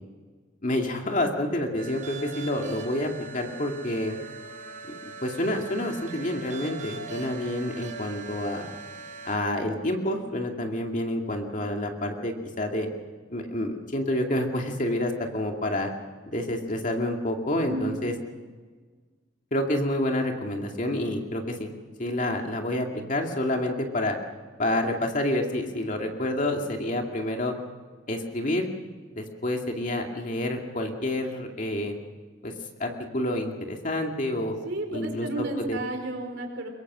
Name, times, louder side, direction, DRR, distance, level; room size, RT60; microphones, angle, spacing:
voice 1, 0.6-4.2 4.9-8.7 9.2-12.9 13.3-15.9 16.3-18.1 19.5-21.7 22.0-24.2 24.6-27.5 28.1-28.7 29.1-31.9 32.4-32.5 32.8-34.5 34.9-35.8, left 1 dB, 40° left, 2 dB, 2.4 m, -28 dB
sound 1, 1.8-9.4, right 4 dB, 40° right, 5.6 m, -41 dB
voice 2, 17.7-18.0 34.6-36.7, right 2 dB, 60° right, 4 dB, 4.3 m, -32 dB
23.5 x 22.5 x 6.2 m, 1.5 s
head